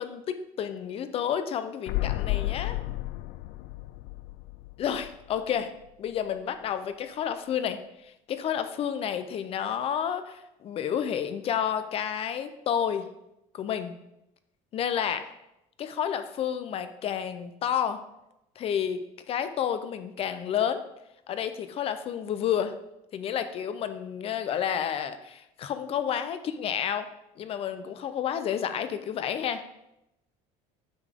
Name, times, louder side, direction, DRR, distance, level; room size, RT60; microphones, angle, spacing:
voice 1, 0.0-2.8 4.8-5.7 6.0-13.1 13.5-13.9 14.7-15.3 15.8-18.0 18.6-20.8 21.3-22.7 23.1-27.1 27.4-29.6, left 9 dB, 40° left, 10 dB, 0.6 m, -30 dB
sound 1, 1.9-5.6 5.9-6.0, left 18 dB, 80° left, 0.4 m, -32 dB
9.8 x 5.6 x 3.6 m, 0.87 s
cardioid pair, 155°, 16 cm